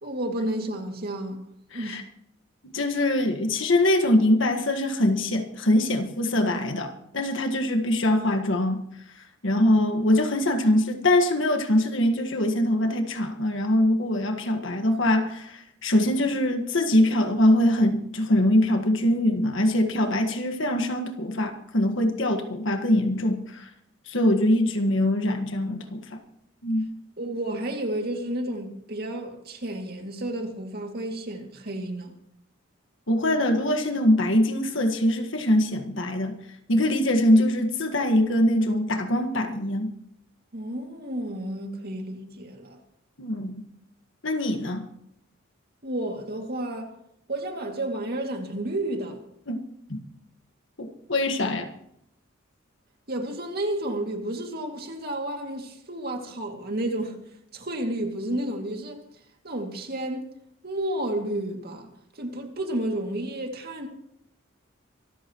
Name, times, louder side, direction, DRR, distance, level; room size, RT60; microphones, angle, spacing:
voice 1, 0.0-1.4 1.7-2.0 27.2-32.1 40.5-42.8 45.8-47.0 47.3-49.2 53.1-57.2 57.5-59.0 59.4-60.3 60.6-63.9, right 1 dB, 50° right, 2.4 m, -31 dB
voice 2, 1.7-2.0 2.6-8.8 9.4-23.7 24.1-26.2 26.6-26.8 33.1-36.3 36.7-39.9 43.2-43.6 44.2-44.9 49.5-49.6 49.9-50.0 50.8-51.7, left 1 dB, 65° left, 1.7 m, -23 dB
24.5 x 14.0 x 3.1 m
head